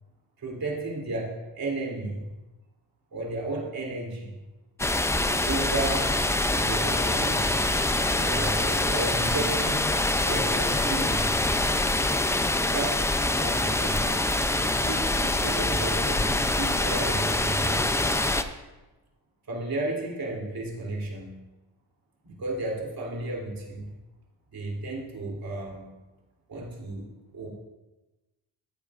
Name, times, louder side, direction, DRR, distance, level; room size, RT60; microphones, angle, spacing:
voice 1, 0.4-2.2 3.1-4.4 5.5-6.1 6.5-7.7 8.2-9.9 10.2-11.4 12.7-14.2 14.6-18.2 19.5-21.4 22.2-23.9 24.5-25.9 26.5-27.5, right 2 dB, 50° right, -2 dB, 3.1 m, -33 dB
sound 1, 4.8-18.4, left 2 dB, 5° left, 0.4 m, -25 dB
14.0 x 9.1 x 2.5 m, 1.1 s
cardioid pair, 100°, 45 cm